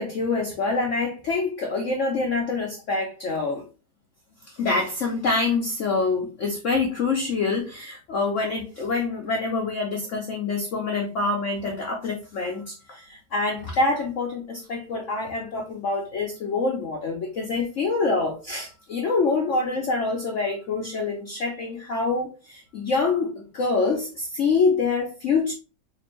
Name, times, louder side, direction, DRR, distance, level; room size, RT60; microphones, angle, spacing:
voice 1, 0.0-3.6 4.5-25.5, left 3 dB, 75° left, 0.6 m, -26 dB
4.3 x 2.5 x 3.0 m
omnidirectional pair, 2.2 m